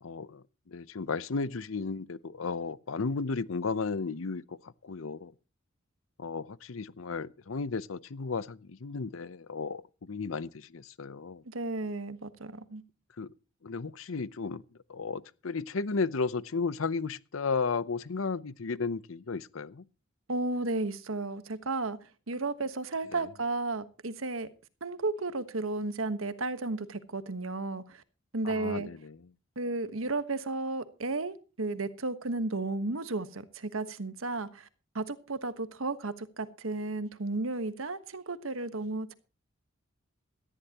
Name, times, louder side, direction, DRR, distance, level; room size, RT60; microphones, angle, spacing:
voice 1, 0.0-4.6 4.8-5.3 6.2-11.4 13.2-13.3 13.6-14.6 14.9-19.8 23.1-23.2 28.4-29.2, left 4 dB, 80° left, 0.7 m, -34 dB
voice 2, 11.4-12.8 20.3-22.0 22.3-24.5 24.8-28.0 28.3-28.9 29.6-34.7 34.9-39.1, right 2 dB, 85° right, 1.3 m, -33 dB
18.0 x 13.5 x 2.9 m
head